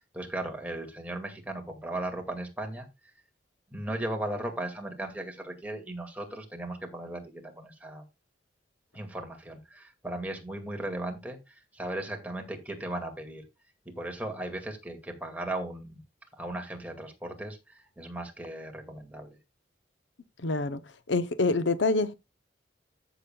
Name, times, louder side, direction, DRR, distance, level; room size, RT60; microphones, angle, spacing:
voice 1, 0.1-2.9 3.7-8.1 8.9-13.4 13.9-16.0 16.3-19.4, right 1 dB, 10° right, 2.1 m, -37 dB
voice 2, 20.4-20.8 21.1-22.1, left 3 dB, 80° left, 0.7 m, -26 dB
14.5 x 7.0 x 2.3 m
head